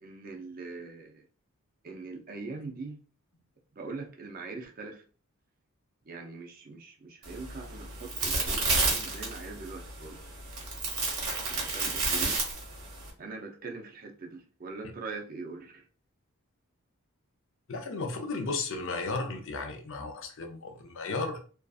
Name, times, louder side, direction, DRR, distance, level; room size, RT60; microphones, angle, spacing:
voice 1, 0.0-1.2 1.8-3.0 3.7-5.0 6.0-10.2 11.5-12.4 13.2-15.8, right 3 dB, 40° right, 2 dB, 0.5 m, -42 dB
sound 1, 7.2-13.1, right 3 dB, 75° right, 1.0 m, -31 dB
voice 2, 17.7-21.4, left 3 dB, 60° left, 4 dB, 0.5 m, -34 dB
2.5 x 2.3 x 2.3 m, 0.39 s
head